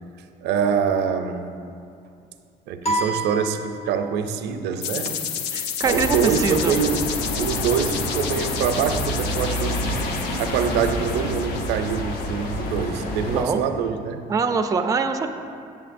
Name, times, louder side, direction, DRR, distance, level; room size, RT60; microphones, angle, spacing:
voice 1, 0.4-1.6 2.7-5.2 5.9-10.1 10.4-14.2, right 7 dB, 80° right, 7 dB, 0.5 m, -25 dB
sound 1, 2.8-4.3, right 1 dB, 40° left, 1.1 m, -28 dB
sound 2, 4.8-12.6, left 8 dB, 90° left, 0.4 m, -31 dB
voice 2, 5.5-6.7 13.3-13.6 14.3-15.3, right 5 dB, 20° right, 6 dB, 0.3 m, -23 dB
sound 3, 5.8-13.4, left 1 dB, 70° left, 0.9 m, -28 dB
8.6 x 7.1 x 2.5 m, 2.4 s
cardioid pair, 110°, 17 cm